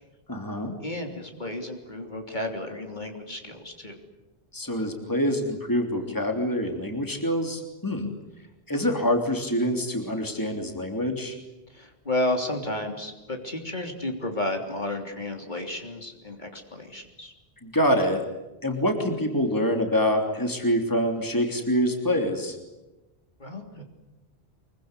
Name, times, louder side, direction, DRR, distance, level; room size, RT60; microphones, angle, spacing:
voice 1, 0.3-0.7 4.5-8.1 8.7-11.4 17.6-18.2 18.6-22.6, equal, 20° left, 4 dB, 3.3 m, -25 dB
voice 2, 0.8-4.0 11.7-17.3 23.4-23.8, left 1 dB, 45° left, 3 dB, 3.5 m, -32 dB
25.0 x 23.5 x 9.8 m, 1.1 s
omnidirectional pair, 1.1 m